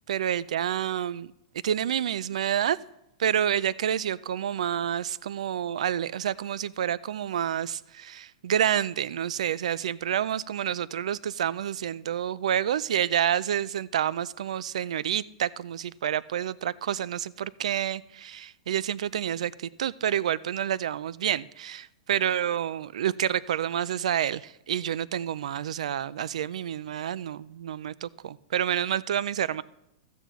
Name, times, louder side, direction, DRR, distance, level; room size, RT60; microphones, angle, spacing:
voice 1, 0.1-1.3 1.6-2.8 3.2-29.6, right 10 dB, 80° right, 0.3 m, -28 dB
14.0 x 8.9 x 3.1 m
supercardioid pair, 175°, 4 cm